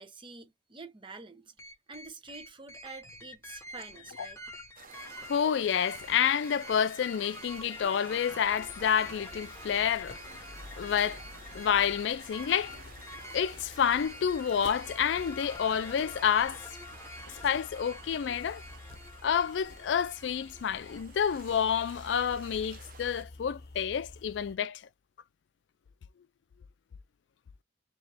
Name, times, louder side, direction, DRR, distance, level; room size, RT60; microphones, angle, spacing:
voice 1, 0.0-1.5 1.9-4.4, right 3 dB, 30° right, 1.0 m, -47 dB
sound 1, 1.6-21.0, left 1 dB, 15° left, 1.0 m, -47 dB
sound 2, 4.7-23.2, right 5 dB, 50° right, 0.7 m, -53 dB
voice 2, 5.2-10.4 10.8-11.2 11.5-12.9 13.3-16.6 17.4-18.6 19.2-24.8, left 8 dB, 75° left, 0.3 m, -29 dB
sound 3, 8.4-24.6, left 2 dB, 60° left, 0.9 m, -50 dB
3.8 x 2.9 x 3.4 m
head